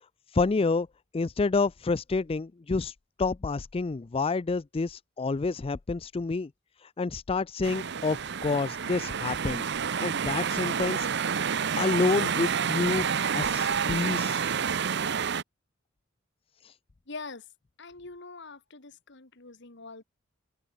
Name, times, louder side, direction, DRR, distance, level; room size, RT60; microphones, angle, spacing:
voice 1, 0.3-0.9 1.1-6.5 6.8-9.6 10.0-11.3 11.8-13.0 13.3-14.5 16.6-16.7, left 3 dB, 30° left, 0.4 m, -29 dB
sound 1, 7.6-15.4, right 7 dB, 60° right, 0.8 m, -29 dB
voice 2, 17.1-17.5 17.8-20.0, left 3 dB, 60° left, 2.2 m, -43 dB
open air
head